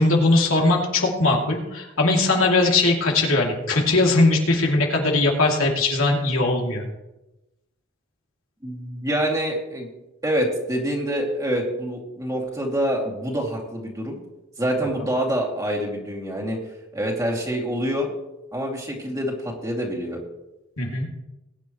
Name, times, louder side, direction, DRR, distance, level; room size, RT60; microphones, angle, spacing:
voice 1, 0.0-6.8 20.8-21.1, left 2 dB, 80° left, -1 dB, 2.7 m, -20 dB
voice 2, 8.6-9.9 10.2-14.2 14.6-16.6 16.9-18.1 18.5-20.2, equal, 15° right, -2 dB, 2.5 m, -26 dB
21.0 x 9.8 x 3.1 m, 0.99 s
head